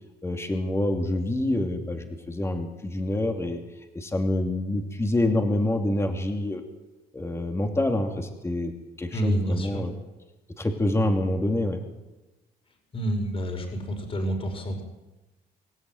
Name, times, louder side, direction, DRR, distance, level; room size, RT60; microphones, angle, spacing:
voice 1, 0.2-3.6 3.9-6.7 7.1-8.7 9.0-9.9 10.6-11.8, left 1 dB, 15° left, 4 dB, 2.7 m, -26 dB
voice 2, 9.1-9.9 12.9-14.8, right 1 dB, 35° left, 4 dB, 5.3 m, -29 dB
26.0 x 13.5 x 9.3 m, 1.1 s
cardioid pair, 110°, 17 cm